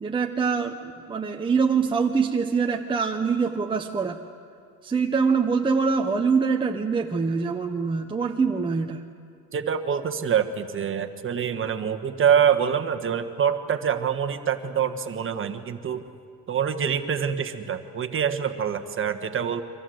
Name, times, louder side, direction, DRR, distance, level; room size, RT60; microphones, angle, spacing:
voice 1, 0.0-4.2 4.8-9.0, right 5 dB, 15° right, 2 dB, 0.9 m, -24 dB
voice 2, 9.5-16.0 16.5-19.6, right 8 dB, 35° right, 7 dB, 1.5 m, -25 dB
30.0 x 24.5 x 7.9 m, 2.2 s
cardioid pair, 160°, 36 cm